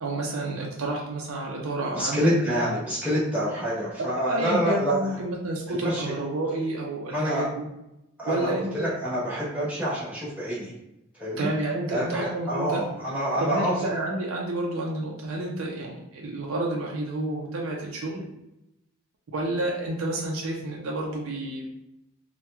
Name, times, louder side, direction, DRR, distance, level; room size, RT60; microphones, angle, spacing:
voice 1, 0.0-2.3 4.1-7.7 8.3-8.9 11.4-12.8 13.4-18.2 19.3-21.7, right 2 dB, 70° right, -2 dB, 0.5 m, -30 dB
voice 2, 1.9-5.2 5.7-6.1 7.1-7.4 8.2-10.7 11.1-11.5 11.9-13.7, equal, 5° right, -9 dB, 1.0 m, -27 dB
2.9 x 2.2 x 3.3 m, 0.89 s
head